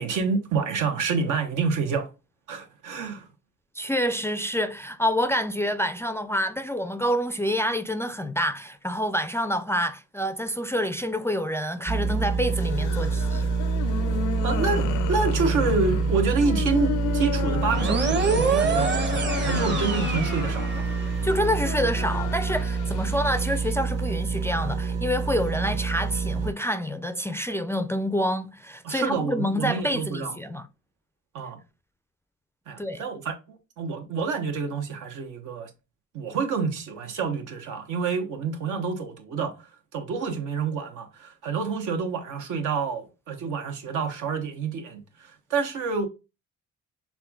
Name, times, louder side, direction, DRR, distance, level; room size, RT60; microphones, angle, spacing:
voice 1, 0.0-2.1 2.5-3.3 14.4-20.9 28.8-30.3 31.3-31.6 32.7-35.7 36.1-39.6 39.9-46.1, right 4 dB, 80° right, 1.2 m, -28 dB
voice 2, 3.8-13.5 21.2-30.7 32.8-33.0, equal, 10° left, 0.3 m, -27 dB
sound 1, 11.9-26.5, right 4 dB, 55° right, 1.4 m, -27 dB
sound 2, 12.5-23.7, left 10 dB, 80° left, 0.5 m, -33 dB
sound 3, 17.7-21.2, right 4 dB, 35° right, 1.0 m, -27 dB
5.7 x 3.6 x 2.3 m
cardioid pair, 90°, 30 cm